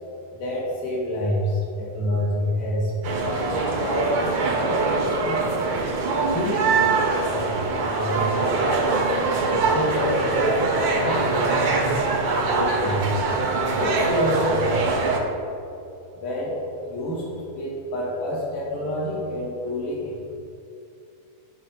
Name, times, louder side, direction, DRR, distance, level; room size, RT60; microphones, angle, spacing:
voice 1, 0.4-5.4 6.3-9.0 9.5-11.6 12.5-13.1 13.8-14.9 16.2-16.5 16.8-20.3, equal, 65° left, -5 dB, 3.9 m, -28 dB
sound 1, 3.0-15.2, right 3 dB, 85° right, 1.0 m, -23 dB
13.5 x 6.2 x 4.2 m, 2.7 s
omnidirectional pair, 4.4 m